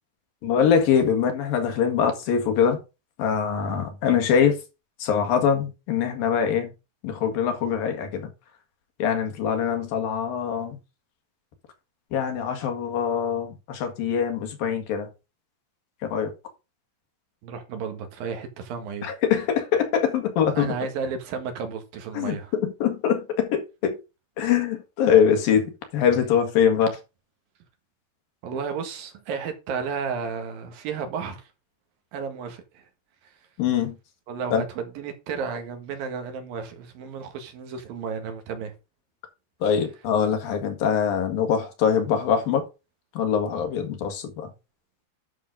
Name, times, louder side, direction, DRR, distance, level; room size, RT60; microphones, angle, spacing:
voice 1, 0.4-2.8 3.2-4.6 5.0-6.7 7.0-8.3 9.0-10.8 12.1-15.1 16.0-16.3 19.0-20.7 22.2-24.0 24.4-27.0 33.6-34.0 34.5-34.6 39.6-42.7 43.2-44.5, left 7 dB, 85° left, 3.7 m, -23 dB
voice 2, 17.4-19.1 20.6-22.5 28.4-31.5 32.1-32.9 33.2-33.4 34.3-38.8, right 6 dB, 85° right, 3.6 m, -33 dB
10.5 x 6.6 x 3.9 m
omnidirectional pair, 4.0 m